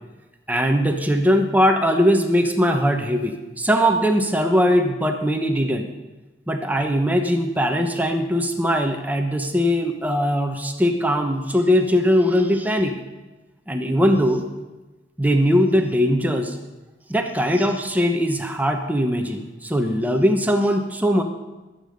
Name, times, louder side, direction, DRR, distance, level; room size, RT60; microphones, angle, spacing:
voice 1, 0.5-5.9 6.5-12.9 13.7-14.4 15.2-16.6 17.1-21.2, equal, 10° right, 4 dB, 1.1 m, -20 dB
21.5 x 8.6 x 5.3 m, 1.2 s
head